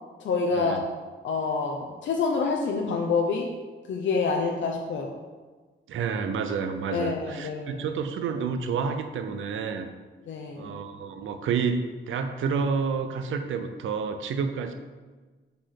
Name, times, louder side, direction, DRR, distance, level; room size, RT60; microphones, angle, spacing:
voice 1, 0.2-0.8 1.2-3.5 3.9-5.1 6.9-7.8 10.3-10.7, left 4 dB, 70° left, 0 dB, 0.7 m, -27 dB
voice 2, 5.9-9.9 10.6-14.7, right 5 dB, 85° right, 7 dB, 0.6 m, -29 dB
5.3 x 4.3 x 5.8 m, 1.3 s
wide cardioid pair, 160°, 20 cm